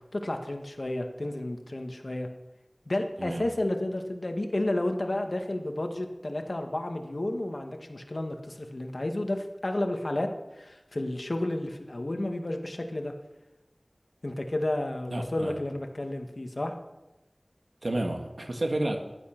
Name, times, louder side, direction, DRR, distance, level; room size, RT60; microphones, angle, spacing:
voice 1, 0.1-2.3 2.8-13.1 14.2-16.7, left 1 dB, 70° left, 5 dB, 1.8 m, -31 dB
voice 2, 15.1-15.6 17.8-19.1, right 1 dB, 85° right, 4 dB, 2.0 m, -31 dB
15.5 x 11.5 x 6.1 m, 1.0 s
wide cardioid pair, 45°, 0 cm